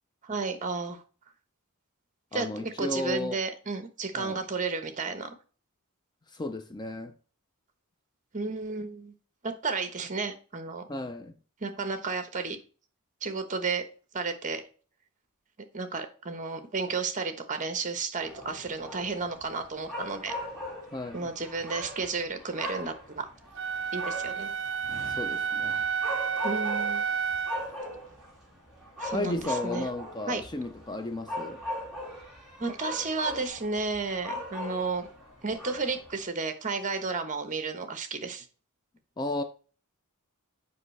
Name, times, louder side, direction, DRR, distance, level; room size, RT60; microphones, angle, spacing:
voice 1, 0.2-1.0 2.3-5.3 8.3-9.1 9.4-10.8 11.6-12.6 13.2-13.8 14.1-14.6 15.7-20.3 21.1-23.3 23.9-24.5 26.4-27.0 29.0-29.9 30.3-30.4 32.6-35.1 35.4-38.4, right 4 dB, 35° right, 1.1 m, -32 dB
voice 2, 2.3-3.4 4.1-4.4 6.3-7.1 10.9-11.3 20.9-21.3 25.1-25.8 29.1-31.6 39.2-39.4, left 2 dB, 20° left, 0.5 m, -34 dB
sound 1, 18.1-36.2, left 1 dB, ahead, 3.2 m, -40 dB
Wind instrument woodwind instrument, 23.6-27.7, right 6 dB, 55° right, 0.5 m, -30 dB
7.6 x 5.5 x 3.2 m
head